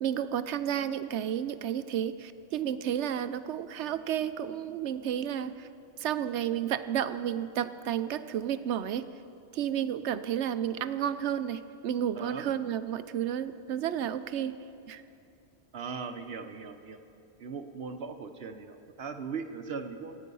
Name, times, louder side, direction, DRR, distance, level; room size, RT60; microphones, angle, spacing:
voice 1, 0.0-5.7 6.0-9.1 9.5-14.5 14.9-15.0, right 9 dB, 90° right, 12 dB, 0.9 m, -31 dB
voice 2, 12.2-12.5 15.7-17.0 17.4-20.2, right 5 dB, 65° right, 8 dB, 1.1 m, -39 dB
26.5 x 9.0 x 5.4 m, 2.6 s
omnidirectional pair, 1.1 m